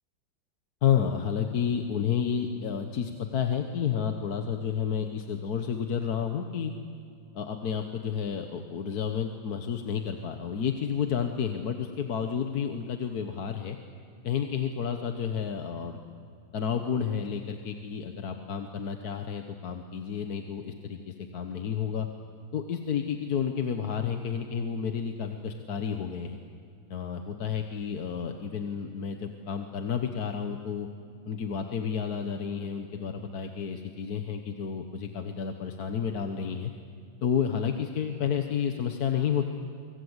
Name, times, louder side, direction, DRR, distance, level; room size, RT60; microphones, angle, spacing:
voice 1, 0.8-6.7 7.3-13.8 14.2-16.0 16.5-22.1 22.5-26.4 26.9-30.9 31.3-36.7 37.2-39.5, left 7 dB, 55° left, 5 dB, 1.5 m, -30 dB
25.5 x 24.0 x 8.1 m, 2.5 s
omnidirectional pair, 2.0 m